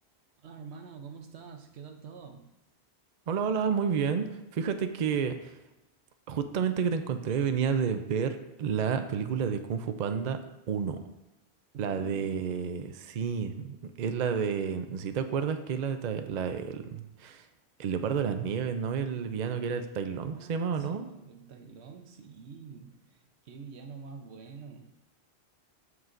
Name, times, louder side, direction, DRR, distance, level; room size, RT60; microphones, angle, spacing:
voice 1, 0.4-2.5 11.7-12.5 20.2-25.0, right 5 dB, 80° right, 6 dB, 1.1 m, -47 dB
voice 2, 3.3-5.5 6.3-10.4 10.7-11.0 11.8-17.4 17.8-21.1, right 7 dB, 50° right, 8 dB, 0.6 m, -30 dB
13.5 x 4.7 x 2.6 m, 0.96 s
omnidirectional pair, 1.1 m